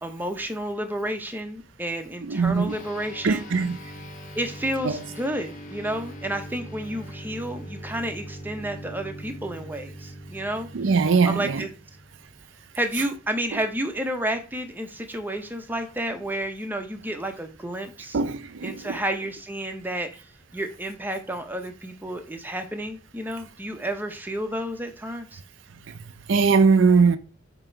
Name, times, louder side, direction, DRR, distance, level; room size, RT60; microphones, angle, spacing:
voice 1, 0.0-3.5 4.4-10.7 11.2-11.7 12.7-18.2 18.6-20.2 20.5-25.4, right 1 dB, 10° right, 0.8 m, -31 dB
voice 2, 2.3-2.8 3.2-3.8 4.8-5.0 10.7-11.7 18.1-19.0 25.9-26.0 26.3-27.2, right 4 dB, 70° right, 0.5 m, -21 dB
sound 1, 2.7-12.4, equal, 40° left, 1.5 m, -41 dB
7.5 x 3.0 x 4.5 m
head